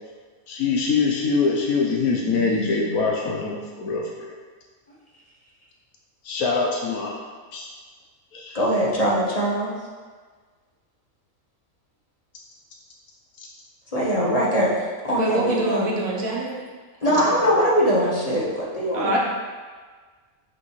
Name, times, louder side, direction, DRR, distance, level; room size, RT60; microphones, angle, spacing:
voice 1, 0.5-4.3 6.2-7.2 7.5-7.7 8.3-8.6 15.4-15.7, left 4 dB, 85° left, -1 dB, 1.2 m, -24 dB
voice 2, 2.2-3.4 8.5-9.7 13.9-16.0 17.0-19.2, equal, 30° left, -5 dB, 1.1 m, -23 dB
voice 3, 15.2-16.6 17.0-17.2 18.9-19.2, right 1 dB, 75° right, -2 dB, 1.5 m, -25 dB
6.1 x 5.4 x 3.1 m, 1.5 s
omnidirectional pair, 1.5 m